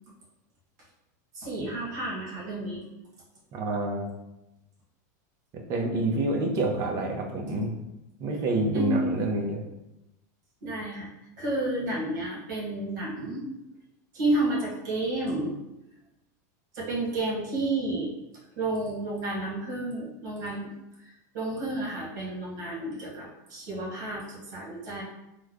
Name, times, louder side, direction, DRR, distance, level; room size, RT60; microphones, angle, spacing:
voice 1, 1.3-2.9 8.7-9.1 10.6-11.1 11.4-13.5 14.1-15.5 16.7-18.1 18.6-25.0, right 2 dB, 75° right, -5 dB, 1.2 m, -31 dB
voice 2, 3.5-4.1 5.7-7.7 8.2-9.6, right 2 dB, 35° right, 1 dB, 0.7 m, -27 dB
3.1 x 2.1 x 3.7 m, 0.92 s
supercardioid pair, 135°, 10 cm